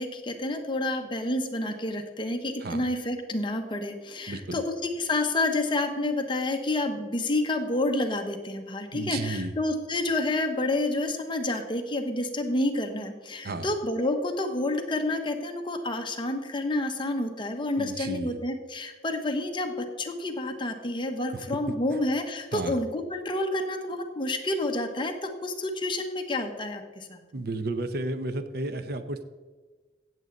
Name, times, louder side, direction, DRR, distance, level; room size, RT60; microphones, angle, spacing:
voice 1, 0.0-27.2, left 2 dB, 25° left, 4 dB, 1.2 m, -29 dB
voice 2, 4.3-4.6 8.9-9.5 13.4-13.7 17.8-18.4 21.3-21.4 22.5-22.8 27.3-29.2, right 2 dB, 60° right, 10 dB, 0.8 m, -33 dB
16.0 x 7.8 x 4.0 m, 1.3 s
head